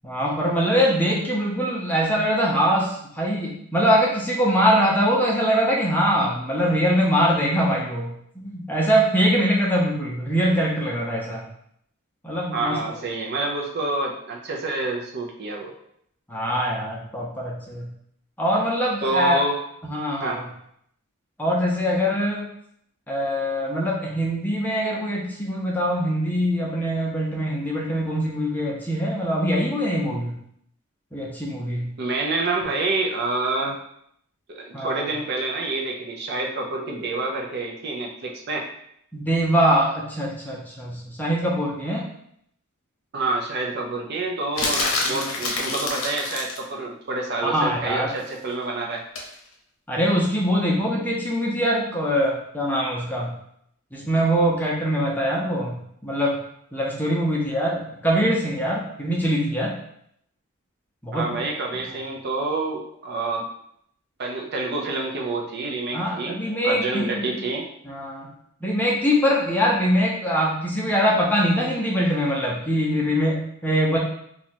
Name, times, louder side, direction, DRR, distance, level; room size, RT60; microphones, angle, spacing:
voice 1, 0.0-11.4 12.2-12.8 16.3-17.9 18.4-19.4 19.9-20.4 21.4-22.4 23.1-30.4 31.1-31.9 34.7-35.1 39.1-42.0 45.1-45.4 47.4-48.1 49.9-53.3 53.9-56.4 56.7-59.7 61.0-61.4 65.9-67.4 67.8-68.3 68.6-74.0, equal, 10° left, -3 dB, 0.6 m, -23 dB
voice 2, 12.5-15.7 19.0-19.6 20.2-20.4 32.0-33.8 34.5-38.6 43.1-49.0 61.1-63.4 64.2-66.3 66.6-67.7, right 3 dB, 50° right, 0 dB, 0.5 m, -27 dB
sound 1, 44.6-46.6 49.2-49.3, left 3 dB, 65° left, 0.7 m, -26 dB
2.8 x 2.3 x 4.1 m, 0.71 s
head